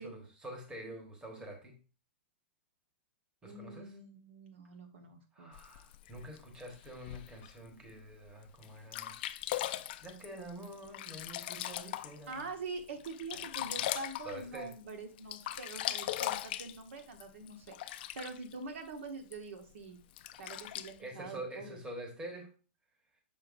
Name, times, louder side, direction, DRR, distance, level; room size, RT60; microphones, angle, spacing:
voice 1, 0.0-1.8 3.4-3.9 5.3-9.2 10.0-12.4 13.3-13.4 14.2-14.7 20.4-20.7 21.0-22.5, right 1 dB, 10° right, 2 dB, 1.3 m, -46 dB
voice 2, 3.4-5.6 12.3-20.0 20.4-21.8, right 3 dB, 75° right, 6 dB, 1.2 m, -45 dB
Sink (filling or washing), 5.5-7.5 8.1-8.2 8.6-8.7 8.9-12.4 12.8-14.9 15.2-18.5 19.3-19.4 20.1-20.9, left 14 dB, 50° left, 0.4 m, -39 dB
6.4 x 5.7 x 2.6 m, 0.36 s
hypercardioid pair, 150°, 7 cm